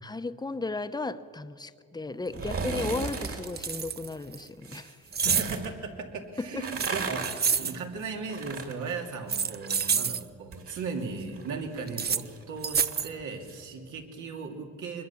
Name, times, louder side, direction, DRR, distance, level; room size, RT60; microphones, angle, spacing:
voice 1, 0.0-5.0 6.5-6.6, left 3 dB, 15° left, 11 dB, 0.9 m, -35 dB
sound 1, 2.3-2.4 2.8-4.4 5.1-5.6 6.7-7.8 9.1-10.2 11.9-12.2 12.6-13.1, right 6 dB, 35° right, 0.7 m, -28 dB
sound 2, 2.3-3.5 4.6-5.7 6.4-9.9 10.2-13.6 14.0-14.1, right 4 dB, 50° right, 3.1 m, -37 dB
voice 2, 5.2-15.0, right 4 dB, 75° right, 3 dB, 2.8 m, -37 dB
23.5 x 21.0 x 7.2 m, 2.4 s
cardioid pair, 90°, 30 cm